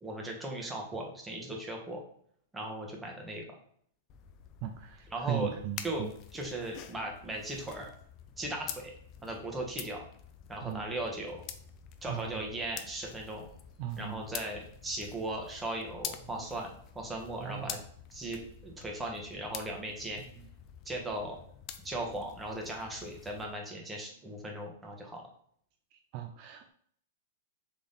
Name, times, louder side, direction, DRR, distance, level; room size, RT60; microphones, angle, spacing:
voice 1, 0.0-2.0 2.5-3.4 5.1-5.5 5.8-6.1 6.3-7.9 8.4-8.9 9.2-10.0 10.5-11.4 12.0-13.4 14.0-16.7 16.9-17.8 18.1-20.2 20.8-21.4 21.8-25.2, right 1 dB, 10° right, 0 dB, 1.2 m, -37 dB
sound 1, 4.1-23.5, left 9 dB, 40° left, 0.5 m, -47 dB
voice 2, 4.6-6.1 10.6-10.8 12.1-12.4 13.8-14.2 17.4-17.7 26.1-26.7, right 10 dB, 50° right, 6 dB, 0.4 m, -37 dB
3.7 x 3.4 x 4.0 m, 0.62 s
hypercardioid pair, 115°, 0 cm